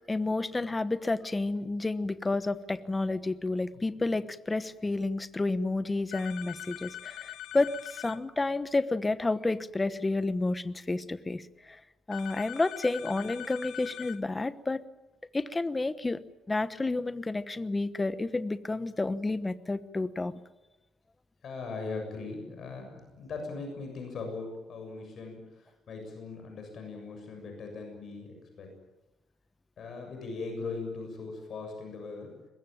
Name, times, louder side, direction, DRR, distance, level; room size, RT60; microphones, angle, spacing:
voice 1, 0.1-11.8 12.1-14.8 15.3-16.2 16.5-20.4, left 2 dB, 15° left, 13 dB, 1.1 m, -30 dB
sound 1, 6.1-8.2 12.1-14.2, left 13 dB, 80° left, 1.2 m, -42 dB
voice 2, 21.4-28.7 29.8-32.3, left 3 dB, 50° left, 3 dB, 7.1 m, -40 dB
23.0 x 21.0 x 9.0 m, 1.0 s
cardioid pair, 150°, 0 cm